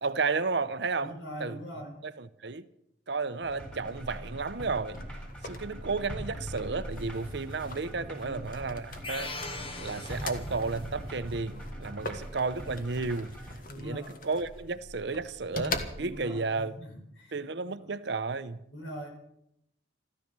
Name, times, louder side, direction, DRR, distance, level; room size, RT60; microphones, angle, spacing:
voice 1, 0.0-1.1 1.4-1.6 2.0-2.7 3.1-5.0 5.4-9.3 9.8-13.3 13.8-16.7 17.3-18.6, right 4 dB, 60° right, 0.8 m, -32 dB
voice 2, 1.0-2.0 8.0-8.4 13.7-14.2 16.0-17.3 17.6-17.9 18.7-19.1, equal, 80° left, 4.7 m, -43 dB
sound 1, 3.4-13.6, equal, 5° left, 4.3 m, -43 dB
sound 2, 3.8-16.4, left 2 dB, 50° left, 1.5 m, -42 dB
sound 3, 9.0-10.9, left 2 dB, 30° left, 1.2 m, -40 dB
14.0 x 13.5 x 6.8 m
head